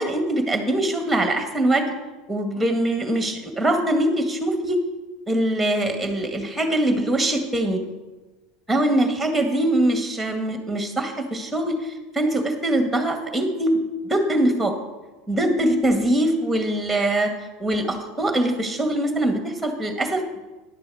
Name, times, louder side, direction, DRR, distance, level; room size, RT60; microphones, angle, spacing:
voice 1, 0.0-1.9 2.3-4.8 5.3-7.8 8.7-13.8 14.1-14.7 15.3-17.3 17.6-20.2, right 1 dB, ahead, 5 dB, 1.9 m, -22 dB
10.5 x 6.9 x 6.3 m, 1.2 s
supercardioid pair, 100°, 0 cm